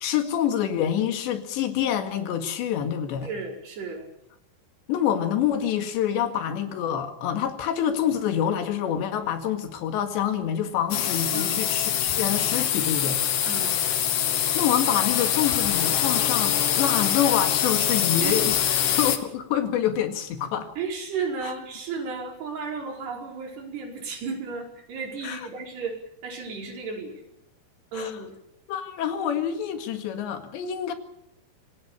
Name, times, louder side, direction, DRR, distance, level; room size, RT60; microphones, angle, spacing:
voice 1, 0.0-3.3 4.9-13.2 14.6-18.6 18.9-20.7 21.4-21.5 25.2-25.5 27.9-28.2 28.7-30.9, left 9 dB, 90° left, 7 dB, 4.2 m, -27 dB
voice 2, 3.2-4.1 11.3-11.7 13.5-13.8 18.2-18.4 20.8-26.0 26.2-27.2 27.9-28.4, right 4 dB, 70° right, 0 dB, 6.9 m, -34 dB
sound 1, 10.9-19.2, left 10 dB, 60° left, 2.7 m, -24 dB
26.0 x 19.0 x 7.2 m, 0.79 s
omnidirectional pair, 5.0 m